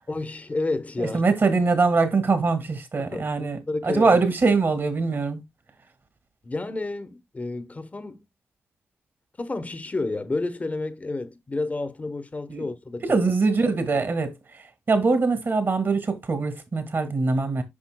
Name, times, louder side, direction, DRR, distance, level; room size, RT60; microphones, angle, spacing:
voice 1, 0.1-1.2 3.0-4.2 6.4-8.2 9.4-13.0, left 2 dB, 30° left, 0.9 m, -30 dB
voice 2, 1.0-5.4 12.5-12.7 13.0-17.6, right 4 dB, 50° right, 2.0 m, -23 dB
8.6 x 5.7 x 2.2 m
cardioid pair, 55°, 5 cm